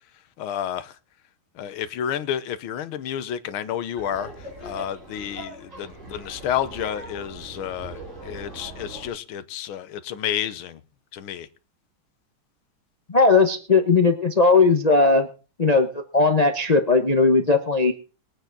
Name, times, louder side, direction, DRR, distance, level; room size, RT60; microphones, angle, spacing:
voice 1, 0.4-0.9 1.5-10.8 11.1-11.5, left 10 dB, 80° left, 1.7 m, -30 dB
Laughter, 4.0-9.1, right 2 dB, 35° right, 5.5 m, -40 dB
voice 2, 13.1-15.3 15.6-17.9, left 3 dB, 40° left, 0.5 m, -18 dB
21.5 x 8.9 x 3.9 m
omnidirectional pair, 2.3 m